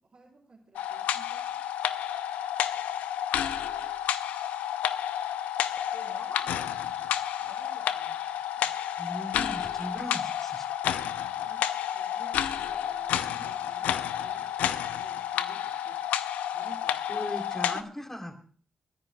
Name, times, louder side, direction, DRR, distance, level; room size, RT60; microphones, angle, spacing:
voice 1, 0.0-1.6 11.4-11.6 11.9-14.5 14.8-16.0 16.5-17.2, right 3 dB, 60° right, -5 dB, 4.2 m, -54 dB
sound 1, 0.8-17.8, left 10 dB, 85° left, 0.5 m, -30 dB
voice 2, 5.9-7.1 7.4-8.9, left 2 dB, 55° left, -4 dB, 5.9 m, -48 dB
voice 3, 9.0-10.9 17.1-18.4, left 1 dB, 15° left, 3 dB, 3.3 m, -38 dB
29.5 x 10.0 x 2.3 m, 0.44 s
supercardioid pair, 40°, 2 cm